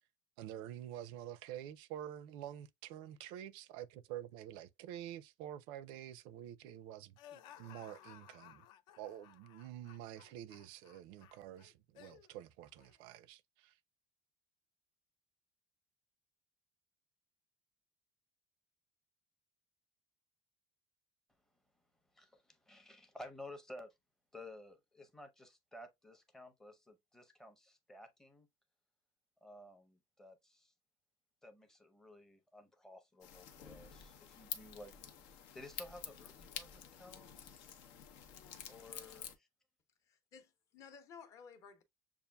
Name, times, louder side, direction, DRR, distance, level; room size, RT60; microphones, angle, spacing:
voice 1, 0.4-8.7 9.0-13.8, right 11 dB, 70° right, 0.4 m, -48 dB
sound 1, 7.2-12.3 12.8-13.0, left 11 dB, 55° left, 0.4 m, -59 dB
voice 2, 22.1-23.9 24.3-28.5 29.4-30.7 31.4-34.9 35.2-37.3 38.7-39.5, left 1 dB, 5° left, 0.6 m, -54 dB
sound 2, 33.2-39.4, left 9 dB, 85° left, 0.7 m, -49 dB
voice 3, 40.1-41.8, left 6 dB, 35° left, 0.8 m, -56 dB
6.8 x 2.4 x 2.2 m
cardioid pair, 165°, 9 cm